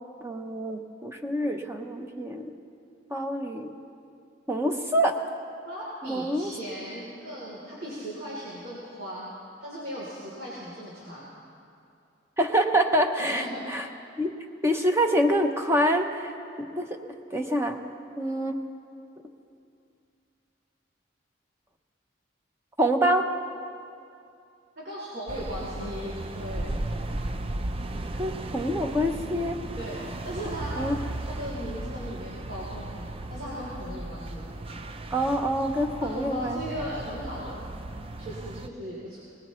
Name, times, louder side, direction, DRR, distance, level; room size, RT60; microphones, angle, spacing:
voice 1, 0.2-2.5 3.1-3.7 4.5-5.2 6.0-6.5 12.4-13.9 14.2-14.3 14.6-16.3 16.7-16.9 17.3-17.8 18.2-18.6 22.8-23.3 28.2-29.6 30.8-30.9 35.1-36.6, equal, 15° right, 4 dB, 0.9 m, -26 dB
voice 2, 5.7-9.3 9.6-11.3 13.2-13.6 24.8-26.7 29.8-34.5 36.0-37.6 38.2-39.2, equal, 55° right, -8 dB, 3.5 m, -37 dB
sound 1, 25.3-38.7, right 2 dB, 30° right, 0.5 m, -36 dB
23.0 x 19.5 x 3.2 m, 2.5 s
head